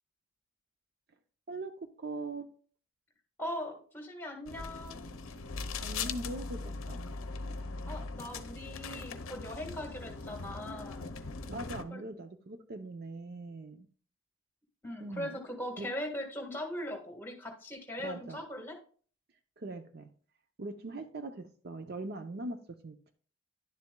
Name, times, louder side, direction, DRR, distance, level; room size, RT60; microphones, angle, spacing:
voice 1, 1.5-2.5 5.8-6.6 6.9-7.0 11.5-13.9 15.0-15.4 15.8-15.9 18.0-18.4 19.6-20.1 20.6-22.6 22.8-23.1, right 2 dB, 45° right, 8 dB, 0.6 m, -41 dB
voice 2, 3.4-5.0 7.8-11.1 11.9-12.0 14.8-18.8, left 1 dB, 10° left, 2 dB, 1.4 m, -40 dB
sound 1, 4.5-11.8, left 4 dB, 70° left, 0.7 m, -40 dB
10.5 x 7.3 x 2.2 m, 0.43 s
head